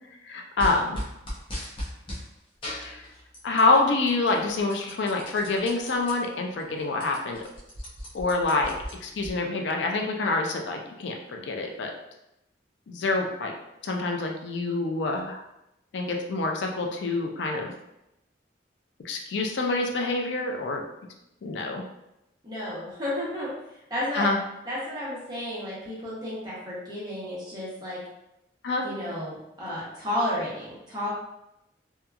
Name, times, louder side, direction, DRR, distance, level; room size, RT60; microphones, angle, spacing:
voice 1, 0.2-1.0 2.8-3.0 3.4-7.4 8.1-8.7 9.0-11.9 12.9-13.5 13.8-15.4 15.9-17.7 19.0-20.8 21.4-21.8 24.2-24.4 28.6-28.8, left 3 dB, 85° left, 2 dB, 0.4 m, -26 dB
sound 1, 0.6-2.2 2.6-3.8 4.1-6.1 6.6-6.7 6.9-9.3, equal, 30° left, 0.6 m, -37 dB
voice 2, 22.4-24.3 24.7-28.0 28.8-31.1, left 1 dB, 20° right, -8 dB, 0.9 m, -32 dB
2.8 x 2.3 x 2.3 m, 0.87 s
head